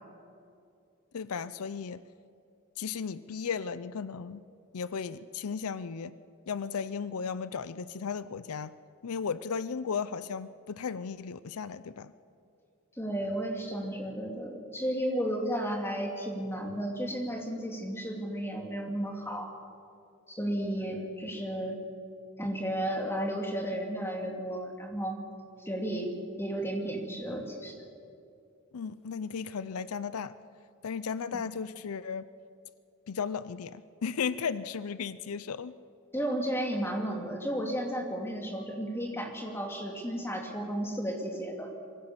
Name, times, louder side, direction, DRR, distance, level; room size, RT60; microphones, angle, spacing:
voice 1, 1.1-2.0 2.8-4.4 4.7-6.1 6.5-8.7 9.0-12.1 28.7-30.3 30.8-32.3 33.1-35.7, left 6 dB, 80° left, 15 dB, 0.5 m, -35 dB
voice 2, 13.0-19.4 20.3-21.8 22.4-25.2 25.6-26.1 26.4-27.7 36.1-41.7, equal, 10° left, 1 dB, 2.4 m, -33 dB
23.0 x 16.0 x 7.2 m, 2.5 s
head